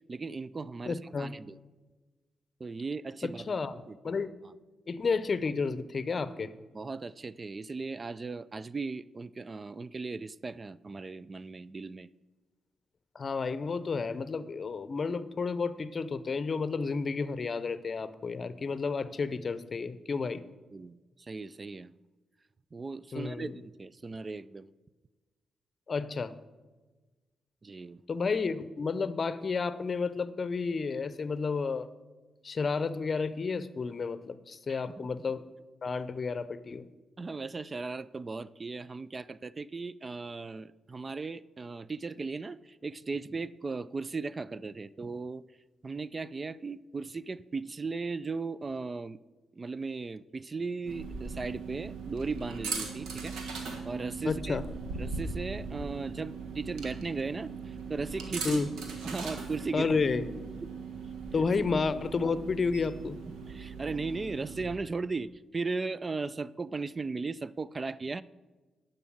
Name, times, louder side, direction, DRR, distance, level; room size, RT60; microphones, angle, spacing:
voice 1, 0.1-1.6 2.6-3.6 3.9-4.2 6.7-12.1 20.7-21.9 22.7-23.5 23.8-24.7 27.6-28.0 34.7-35.2 37.2-45.4 45.8-49.2 49.6-54.6 55.0-58.6 59.0-59.9 60.6-60.7 63.3-68.2, right 4 dB, 35° right, 18 dB, 0.3 m, -37 dB
voice 2, 0.9-1.3 3.2-3.7 4.0-4.3 4.9-6.5 13.1-20.4 23.1-23.5 25.9-26.3 28.1-31.9 32.4-35.4 35.8-36.9 54.3-54.6 58.4-58.7 59.7-60.2 61.3-63.2, left 4 dB, 45° left, 15 dB, 0.6 m, -31 dB
sound 1, 50.9-64.7, right 4 dB, 85° right, 1.4 m, -39 dB
11.0 x 5.4 x 7.2 m, 1.2 s
supercardioid pair, 60°, 0 cm